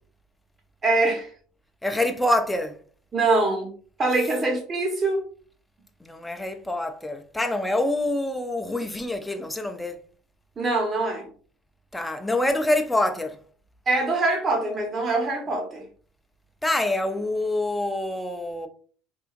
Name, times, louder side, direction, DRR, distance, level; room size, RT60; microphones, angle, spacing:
voice 1, 0.8-1.3 3.1-3.7 4.0-5.2 10.6-11.3 13.9-15.8, right 2 dB, 35° right, 1.3 m, -23 dB
voice 2, 1.8-2.8 6.0-10.0 11.9-13.4 16.6-18.7, left 1 dB, 5° left, 0.6 m, -26 dB
3.6 x 2.8 x 2.5 m
supercardioid pair, 95°, 0 cm